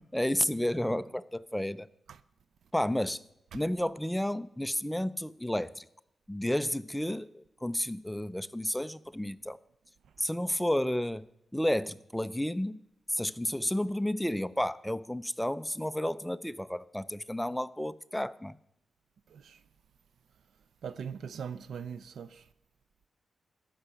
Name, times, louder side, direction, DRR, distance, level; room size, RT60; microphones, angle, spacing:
voice 1, 0.1-1.9 2.7-3.2 3.5-5.8 6.3-9.6 10.2-11.3 11.5-12.8 13.1-18.6, left 1 dB, 5° left, 0.5 m, -31 dB
voice 2, 20.8-22.4, right 7 dB, 80° right, 0.6 m, -40 dB
14.0 x 6.7 x 9.0 m
cardioid pair, 80°, 0 cm